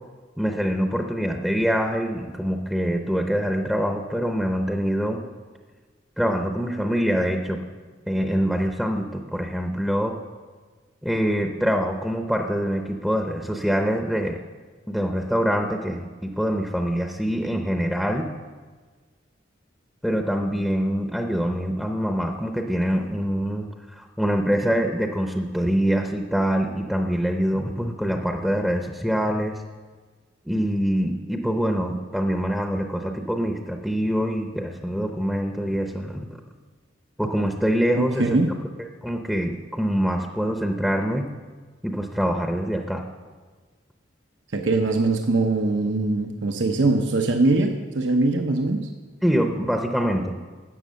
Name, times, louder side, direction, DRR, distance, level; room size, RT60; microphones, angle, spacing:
voice 1, 0.4-5.2 6.2-7.6 8.1-10.1 11.0-14.4 14.9-18.3 20.0-23.6 23.9-29.6 30.5-36.3 37.2-38.4 39.0-41.3 41.8-43.0 49.2-50.3, equal, ahead, 4 dB, 0.7 m, -24 dB
voice 2, 37.9-38.5 44.5-48.8, right 2 dB, 80° right, 4 dB, 0.9 m, -22 dB
12.0 x 8.1 x 6.3 m, 1.4 s
head